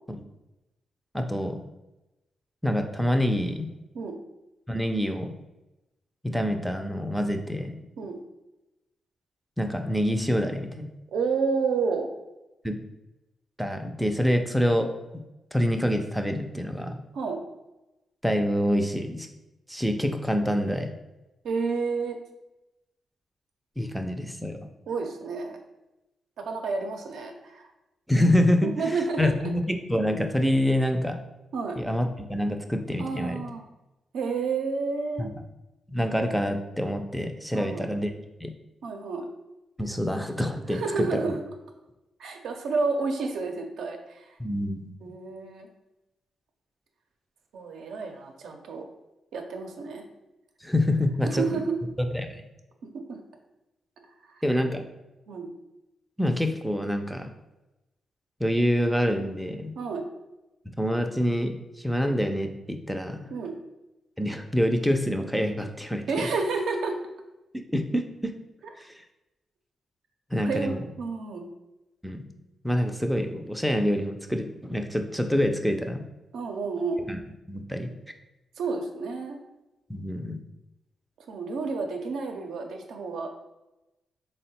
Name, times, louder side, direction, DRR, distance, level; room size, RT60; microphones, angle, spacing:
voice 1, 1.1-1.6 2.6-3.7 4.7-5.3 6.2-7.8 9.6-10.9 12.6-12.8 13.6-14.9 15.5-17.0 18.2-19.3 19.7-20.9 23.8-24.6 28.1-31.2 31.8-33.4 35.2-35.3 35.9-38.1 38.4-38.5 39.8-41.3 44.4-45.1 50.6-51.6 52.1-52.4 54.4-54.8 56.2-57.3 58.4-59.7 60.8-63.3 64.2-66.3 67.5-68.3 70.3-70.9 72.0-72.2 72.6-76.0 77.1-77.2 77.5-77.9 79.9-80.4, equal, ahead, 4 dB, 0.4 m, -26 dB
voice 2, 11.1-12.1 17.1-17.4 21.4-22.2 24.9-25.6 26.5-27.7 28.6-29.3 31.5-31.8 33.0-33.6 34.1-35.3 37.5-37.8 38.8-39.3 40.7-41.4 42.2-44.4 45.0-45.7 47.5-48.8 49.3-50.0 51.2-51.7 52.9-53.2 54.2-54.4 55.3-55.5 59.7-60.0 63.3-63.5 66.1-67.0 70.4-71.5 76.3-77.1 78.6-79.4 81.3-83.3, right 4 dB, 85° right, 3 dB, 0.5 m, -30 dB
3.6 x 2.1 x 4.1 m, 0.99 s
cardioid pair, 80°, 0 cm